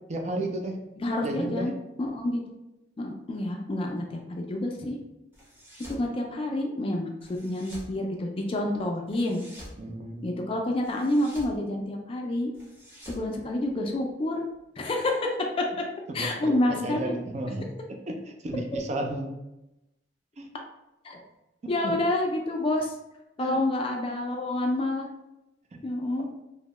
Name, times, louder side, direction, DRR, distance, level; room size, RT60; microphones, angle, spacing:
voice 1, 0.1-0.8 1.2-1.7 9.8-10.5 16.1-17.7 18.1-18.2 18.4-19.3 20.4-20.5 21.8-22.0 23.4-23.6, right 1 dB, 40° right, 3 dB, 0.4 m, -32 dB
voice 2, 1.0-2.4 3.0-5.0 5.9-9.4 10.2-12.5 13.1-14.5 14.8-15.6 16.1-17.1 21.0-21.2 21.7-22.9 23.4-25.1 25.8-26.3, left 1 dB, 30° left, 2 dB, 0.3 m, -28 dB
sound 1, 5.3-6.1 7.2-7.9 9.1-9.8 10.8-11.6 12.5-14.1, equal, 15° right, 0.7 m, -47 dB
2.7 x 2.1 x 3.0 m, 0.93 s
head